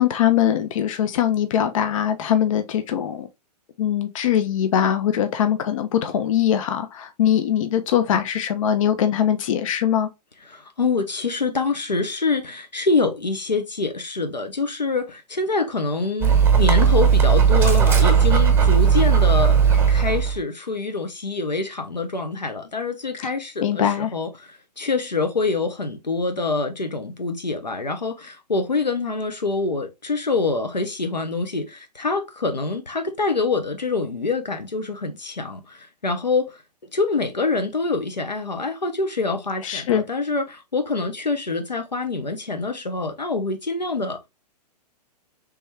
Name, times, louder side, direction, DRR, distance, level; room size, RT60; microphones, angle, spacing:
voice 1, 0.0-3.3 3.8-10.1 23.6-24.1 39.6-40.0, left 10 dB, 50° left, 0.5 m, -21 dB
voice 2, 10.5-44.3, left 3 dB, 90° left, 0.7 m, -25 dB
Dog, 16.2-20.4, right 7 dB, 10° right, 1.0 m, -16 dB
3.3 x 3.1 x 3.2 m
figure-of-eight pair, 115°, 21 cm